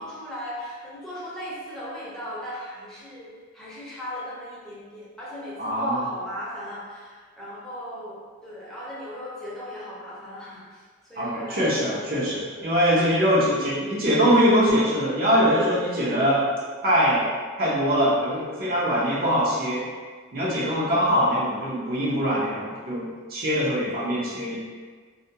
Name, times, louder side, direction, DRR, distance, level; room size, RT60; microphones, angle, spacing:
voice 1, 0.0-11.6 12.4-12.7, equal, 5° left, -9 dB, 0.6 m, -38 dB
voice 2, 5.6-6.0 11.2-16.5 16.8-17.2 17.6-19.8 20.3-24.6, equal, 45° right, -7 dB, 0.7 m, -22 dB
2.3 x 2.2 x 2.7 m, 1.5 s
head